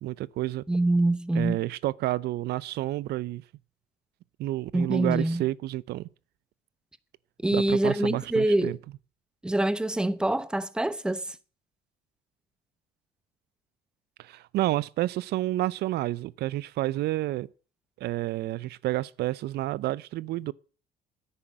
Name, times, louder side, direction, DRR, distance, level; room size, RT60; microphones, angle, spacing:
voice 1, 0.0-0.6 1.3-3.4 4.4-6.1 7.5-8.8 14.2-17.5 18.0-20.5, right 16 dB, 75° right, 0.5 m, -30 dB
voice 2, 0.7-1.6 4.7-5.4 7.4-8.8 9.4-11.4, right 1 dB, 5° right, 0.8 m, -25 dB
10.0 x 9.8 x 9.1 m
cardioid pair, 110°, 17 cm